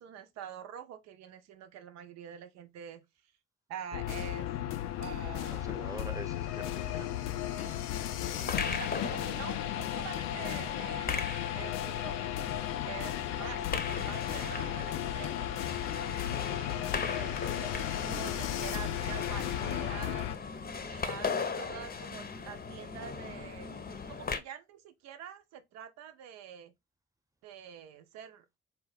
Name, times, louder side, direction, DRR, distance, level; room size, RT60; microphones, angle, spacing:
voice 1, 0.0-3.0 3.7-4.5 5.0-5.7 6.9-7.2 7.5-7.8 8.3-11.2 11.5-12.5 12.9-15.5 16.5-20.3 20.8-23.7 24.1-26.7 27.4-28.5, right 9 dB, 65° right, 0.7 m, -46 dB
sound 1, 3.9-20.4, left 12 dB, 65° left, 0.5 m, -35 dB
voice 2, 5.5-7.2 13.3-13.4 16.1-16.4 17.1-17.3, right 2 dB, 10° right, 1.0 m, -46 dB
sound 2, 8.2-24.4, left 5 dB, 30° left, 0.7 m, -39 dB
4.0 x 2.2 x 3.8 m
hypercardioid pair, 45°, 29 cm